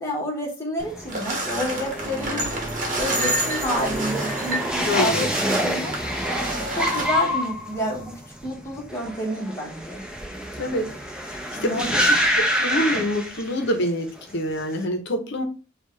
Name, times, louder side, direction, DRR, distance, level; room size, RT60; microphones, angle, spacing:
voice 1, 0.0-2.5 3.0-5.9 6.7-10.0 11.5-12.2, equal, 15° left, -2 dB, 1.3 m, -29 dB
sound 1, 0.8-13.9 14.2-14.7, equal, 5° right, 0.7 m, -27 dB
sound 2, 1.1-7.1, right 1 dB, 40° right, 1.2 m, -29 dB
voice 2, 4.9-5.3 10.6-10.9 11.3-11.9 12.5-15.4, left 1 dB, 60° left, 6 dB, 0.8 m, -26 dB
5.3 x 2.4 x 3.2 m, 0.33 s
head